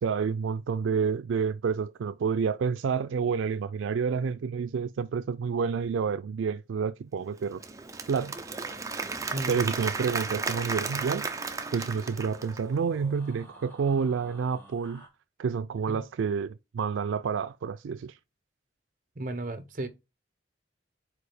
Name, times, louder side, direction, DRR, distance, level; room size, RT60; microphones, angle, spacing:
voice 1, 0.0-7.6 8.1-8.4 9.5-11.3 11.7-15.0 15.4-18.2, right 6 dB, 90° right, 0.4 m, -29 dB
Applause / Crowd, 7.4-12.8, right 4 dB, 15° right, 0.5 m, -34 dB
sound 1, 9.8-15.1, equal, 10° left, 2.0 m, -51 dB
voice 2, 19.2-19.9, right 2 dB, 45° right, 0.9 m, -34 dB
4.8 x 4.4 x 4.9 m
head